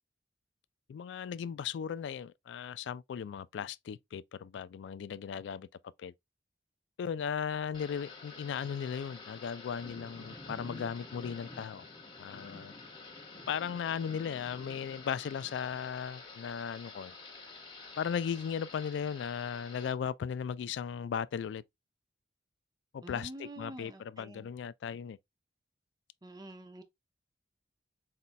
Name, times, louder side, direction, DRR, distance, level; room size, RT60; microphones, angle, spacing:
voice 1, 0.9-5.7 6.0-6.1 7.0-11.9 12.2-12.7 13.5-17.1 18.0-21.6 22.9-25.2, left 7 dB, 80° left, 0.3 m, -37 dB
Thunder / Rain, 7.7-19.9, left 3 dB, 30° left, 1.2 m, -49 dB
voice 2, 23.0-24.5 26.2-26.8, right 1 dB, 20° right, 0.6 m, -47 dB
4.2 x 4.0 x 2.2 m
head